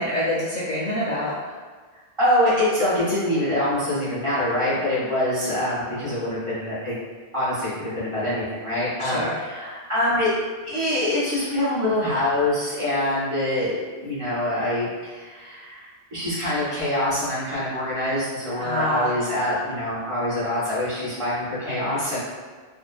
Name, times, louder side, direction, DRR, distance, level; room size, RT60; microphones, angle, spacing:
voice 1, 0.0-1.3 9.0-9.3 18.6-19.1, equal, 55° left, -7 dB, 0.5 m, -25 dB
voice 2, 2.2-6.9 7.3-10.3 10.7-22.2, left 1 dB, 35° right, -11 dB, 0.8 m, -25 dB
2.7 x 2.1 x 2.2 m, 1.5 s
omnidirectional pair, 1.0 m